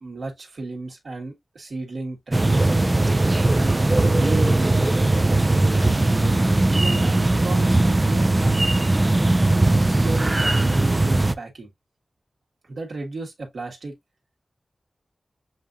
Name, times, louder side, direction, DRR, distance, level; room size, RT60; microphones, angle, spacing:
voice 1, 0.0-2.7 3.5-8.6 9.8-11.7 12.6-13.9, right 3 dB, 70° right, 1.4 m, -34 dB
sound 1, 2.3-11.4, right 2 dB, 25° right, 0.4 m, -19 dB
7.2 x 2.5 x 2.6 m
wide cardioid pair, 95°, 0 cm